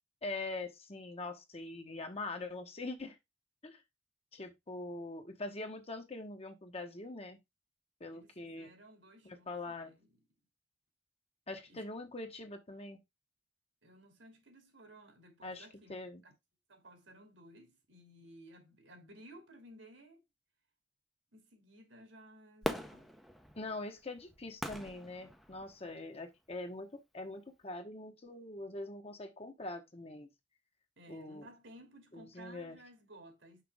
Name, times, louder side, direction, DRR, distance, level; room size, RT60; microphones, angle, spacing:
voice 1, 0.2-3.2 3.6-3.8 4.3-7.4 8.0-8.7 9.2-9.9 11.5-13.0 15.4-16.2 23.5-30.3 31.1-31.5 32.1-32.8, left 2 dB, 35° left, 1.2 m, -43 dB
voice 2, 8.1-10.2 11.7-11.8 13.8-15.9 16.2-16.3 16.7-20.2 21.3-23.1 25.9-26.1 31.0-33.6, right 1 dB, 80° right, 2.6 m, -57 dB
Fireworks, 22.6-26.0 26.5-26.6, equal, ahead, 0.7 m, -41 dB
6.0 x 5.8 x 3.5 m
head